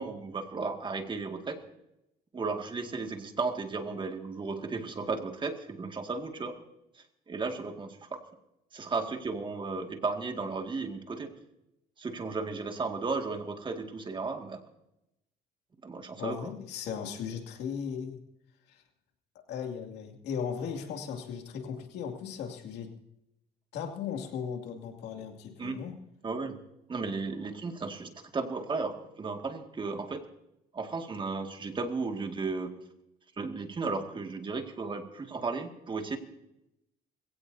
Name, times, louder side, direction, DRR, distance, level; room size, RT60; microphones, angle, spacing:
voice 1, 0.0-1.6 2.3-6.6 7.3-8.2 8.7-11.3 12.0-14.6 15.8-16.5 25.6-25.8 26.2-26.6 26.9-30.2 30.7-32.7 33.4-36.2, right 4 dB, 30° right, 5 dB, 2.1 m, -34 dB
voice 2, 16.2-18.2 18.7-18.8 19.5-22.9 23.7-25.9, left 7 dB, 80° left, 3 dB, 2.5 m, -37 dB
21.5 x 16.5 x 2.8 m, 0.86 s
cardioid pair, 110°, 17 cm